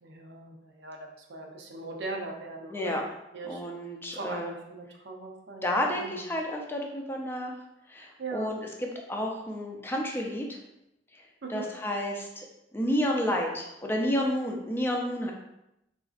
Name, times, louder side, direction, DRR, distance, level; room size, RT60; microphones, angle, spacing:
voice 1, 0.0-3.0 3.3-3.7 4.1-6.3 8.2-8.6 11.4-11.7, right 3 dB, 70° right, 1 dB, 0.5 m, -40 dB
voice 2, 2.7-3.0 3.5-4.5 5.6-7.5 7.9-8.6 9.1-10.6 11.5-12.5 12.7-15.3, equal, 15° left, 0 dB, 0.4 m, -30 dB
3.9 x 2.5 x 2.4 m, 0.86 s
head